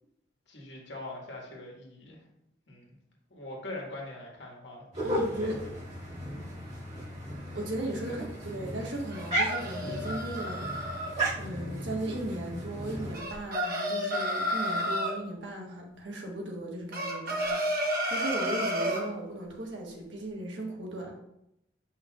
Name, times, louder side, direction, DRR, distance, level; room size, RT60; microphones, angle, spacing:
voice 1, 0.5-2.2 2.7-3.0 3.3-5.6 6.1-6.2 8.1-8.2, left 2 dB, 75° left, -2 dB, 1.7 m, -43 dB
sound 1, 4.9-13.2, right 1 dB, 40° right, 2.1 m, -35 dB
voice 2, 5.0-5.7 7.5-10.6 11.4-21.1, right 1 dB, 90° right, -1 dB, 1.4 m, -37 dB
sound 2, 9.1-11.1 13.1-15.2 16.9-19.1, equal, 55° right, 1.2 m, -31 dB
7.6 x 5.5 x 2.4 m, 0.79 s
head